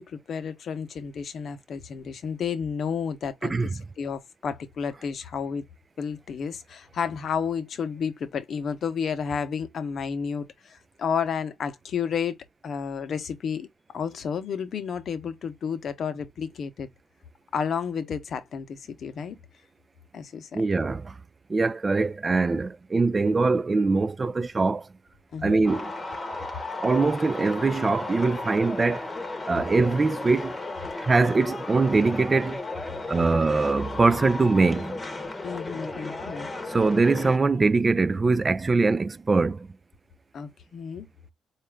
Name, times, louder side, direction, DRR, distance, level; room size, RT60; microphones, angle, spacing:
voice 1, 0.0-3.6 4.0-5.6 6.0-12.4 12.6-13.7 13.9-16.9 17.5-19.4 20.1-20.6 25.3-25.6 35.4-36.5 40.3-41.1, left 6 dB, 55° left, 0.7 m, -31 dB
voice 2, 3.4-3.7 20.5-21.1 21.5-24.9 25.4-25.9 26.8-29.1 29.5-30.6 31.0-32.6 33.1-35.0 36.7-39.7, right 3 dB, 30° right, 0.3 m, -23 dB
sound 1, 25.6-37.4, left 2 dB, 20° left, 0.9 m, -35 dB
4.1 x 2.4 x 3.3 m
cardioid pair, 90°, 0 cm